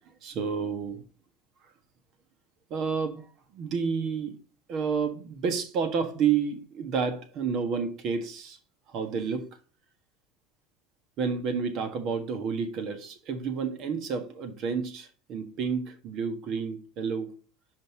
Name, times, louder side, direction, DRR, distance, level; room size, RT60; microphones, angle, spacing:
voice 1, 0.2-1.0 2.7-3.3 3.5-4.4 4.7-8.6 8.9-9.6 11.2-17.3, right 6 dB, 55° right, 1.4 m, -30 dB
5.7 x 5.1 x 4.8 m
hypercardioid pair, 90°, 0 cm